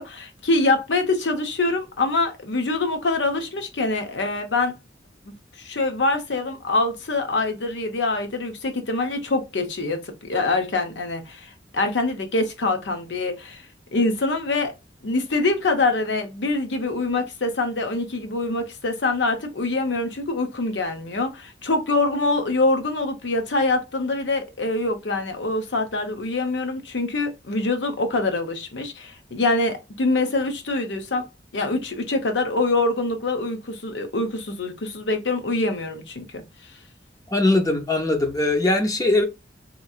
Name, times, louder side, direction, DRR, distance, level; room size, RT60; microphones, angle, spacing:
voice 1, 0.0-4.7 5.3-13.6 13.9-14.7 15.0-31.3 31.5-36.4, left 2 dB, 85° left, 0.8 m, -24 dB
voice 2, 37.3-39.2, left 2 dB, 20° left, 0.5 m, -20 dB
2.9 x 2.7 x 2.3 m
head